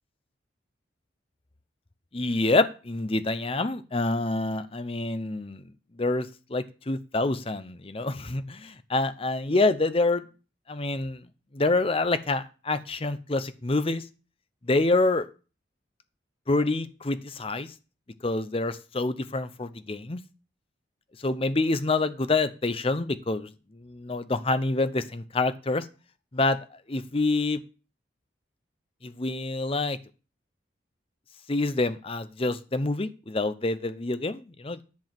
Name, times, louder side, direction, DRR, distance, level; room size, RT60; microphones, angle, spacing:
voice 1, 2.1-5.6 6.0-10.2 10.7-11.2 11.5-14.0 14.7-15.3 16.5-17.7 18.2-20.2 21.2-23.5 23.8-25.9 26.3-26.6 26.9-27.6 29.0-30.0 31.5-34.8, left 2 dB, 30° left, 12 dB, 0.7 m, -27 dB
10.5 x 4.7 x 7.6 m, 0.34 s
head